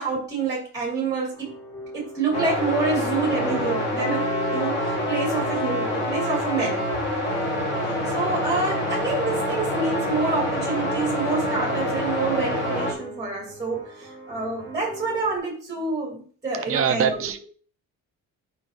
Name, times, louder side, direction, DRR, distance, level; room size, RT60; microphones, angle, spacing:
voice 1, 0.0-1.5 1.9-6.8 8.1-17.1, right 4 dB, 10° right, -3 dB, 2.8 m, -27 dB
sound 1, 1.3-15.4, equal, 5° left, 2.9 m, -40 dB
sound 2, 2.3-12.9, left 1 dB, 30° left, 2.6 m, -26 dB
voice 2, 16.7-17.4, right 8 dB, 40° right, 9 dB, 0.7 m, -23 dB
9.1 x 5.3 x 3.0 m, 0.43 s
cardioid pair, 175°, 34 cm